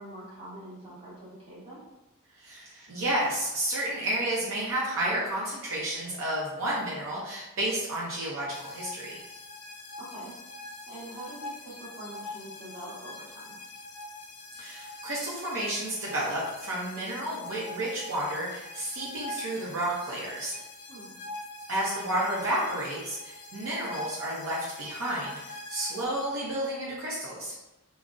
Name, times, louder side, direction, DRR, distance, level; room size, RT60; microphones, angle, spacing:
voice 1, 0.0-1.8 10.0-10.4 10.9-13.5 20.9-21.1, right 1 dB, 25° right, -9 dB, 1.1 m, -44 dB
voice 2, 2.4-9.2 14.6-20.6 21.7-27.7, right 1 dB, 60° right, -5 dB, 0.6 m, -31 dB
sound 1, 8.5-26.1, left 2 dB, 80° left, 0.4 m, -43 dB
3.7 x 2.0 x 2.4 m, 0.96 s
head